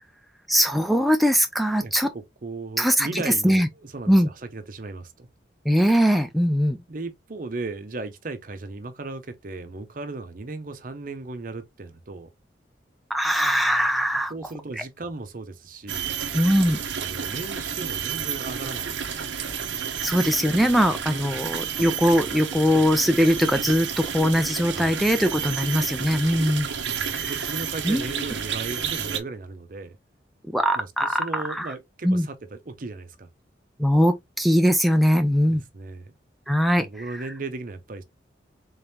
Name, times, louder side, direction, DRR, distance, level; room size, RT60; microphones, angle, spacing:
voice 1, 0.5-2.1 2.8-3.7 4.1-4.3 5.7-6.8 13.1-14.3 14.8-14.9 16.3-16.8 20.0-26.7 27.1-27.3 27.8-28.2 30.5-31.7 32.0-32.3 33.8-35.6 36.5-36.9 37.1-37.2, equal, ahead, 0.4 m, -21 dB
voice 2, 1.8-5.3 6.9-12.3 14.3-16.1 17.0-19.4 24.7-24.9 26.8-30.0 30.8-33.3 35.5-36.1 36.8-38.0, right 3 dB, 50° right, 0.7 m, -36 dB
sound 1, 15.9-29.2, right 7 dB, 85° right, 0.7 m, -31 dB
3.7 x 3.5 x 2.7 m
head